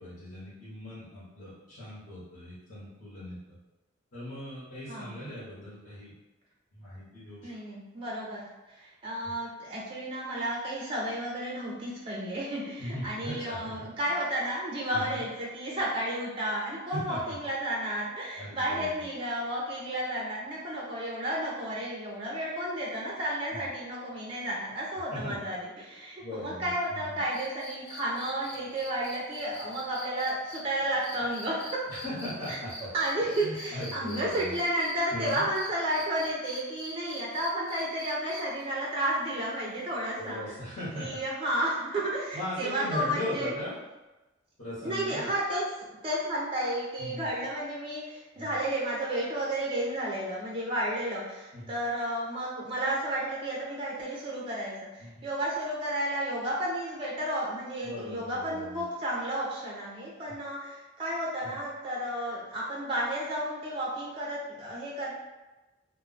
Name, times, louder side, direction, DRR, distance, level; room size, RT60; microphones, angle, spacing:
voice 1, 0.0-3.6 4.1-6.1 6.7-7.5 9.2-9.3 12.8-14.1 14.9-15.2 16.9-17.3 18.4-19.0 23.5-23.6 25.1-25.5 26.2-27.2 31.9-32.9 33.4-34.6 35.1-35.4 40.2-41.2 42.3-43.8 44.6-45.3 47.0-47.3 48.3-48.6 51.5-51.8 55.0-55.3 57.8-58.8 61.4-61.6, left 1 dB, 45° left, -11 dB, 0.9 m, -39 dB
voice 2, 7.4-31.8 32.5-32.6 32.9-40.4 41.0-43.6 44.8-65.1, right 1 dB, 25° right, -5 dB, 0.4 m, -32 dB
sound 1, 27.3-34.9 35.3-38.6 40.3-40.4, equal, 30° left, 0.5 m, -43 dB
2.1 x 2.0 x 3.8 m, 1.1 s
head